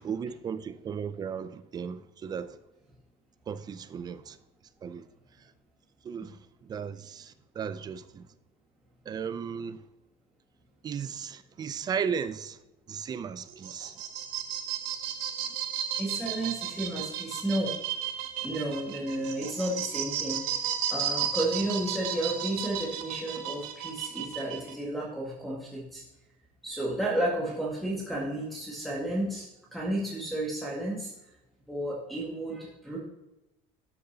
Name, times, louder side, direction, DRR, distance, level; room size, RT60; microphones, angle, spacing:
voice 1, 0.0-2.6 3.5-4.4 4.8-5.1 6.0-8.3 9.1-9.8 10.8-12.6 12.9-14.0, right 7 dB, 25° right, 0.4 m, -35 dB
sound 1, 13.5-24.7, right 9 dB, 70° right, 1.4 m, -34 dB
voice 2, 16.0-17.7 18.4-20.4 20.9-26.0 26.6-31.1 31.7-33.0, right 1 dB, ahead, 1.8 m, -32 dB
13.0 x 6.7 x 2.8 m
cardioid pair, 155°, 17 cm